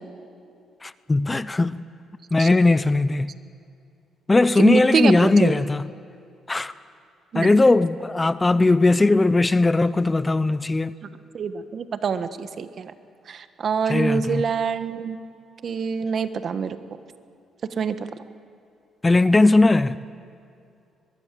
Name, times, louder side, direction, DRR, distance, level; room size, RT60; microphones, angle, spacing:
voice 1, 0.8-1.9 2.3-3.3 4.3-5.9 6.5-6.7 7.3-11.0 13.9-14.5 19.0-20.0, left 2 dB, 20° left, 0.6 m, -19 dB
voice 2, 4.6-5.6 7.3-7.6 11.3-12.9 13.3-15.2 15.6-16.8 17.6-18.1, right 6 dB, 55° right, 1.3 m, -25 dB
22.5 x 21.0 x 7.6 m
cardioid pair, 90°, 0 cm